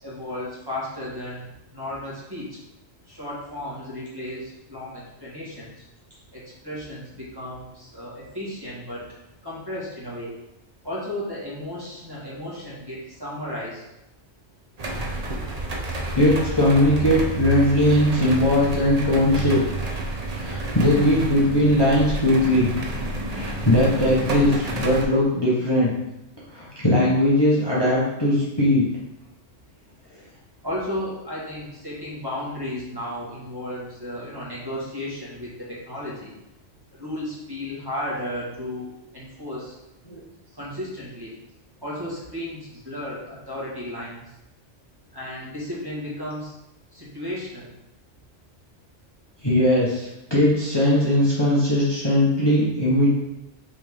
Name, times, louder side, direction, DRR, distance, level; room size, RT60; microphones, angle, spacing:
voice 1, 0.0-2.6 3.1-5.8 6.3-9.0 9.4-10.3 10.8-13.8 30.6-36.3 37.0-39.7 40.6-41.4 41.8-44.2 45.1-46.5 46.9-47.7, left 1 dB, 20° right, -7 dB, 1.9 m, -34 dB
sound 1, 14.8-25.0, right 2 dB, 35° right, 0.8 m, -29 dB
voice 2, 16.1-19.6 20.3-22.7 23.3-25.9 26.5-28.8 40.1-40.2 49.4-53.1, left 1 dB, 20° left, -7 dB, 1.2 m, -19 dB
5.8 x 4.7 x 3.6 m, 0.89 s
omnidirectional pair, 1.2 m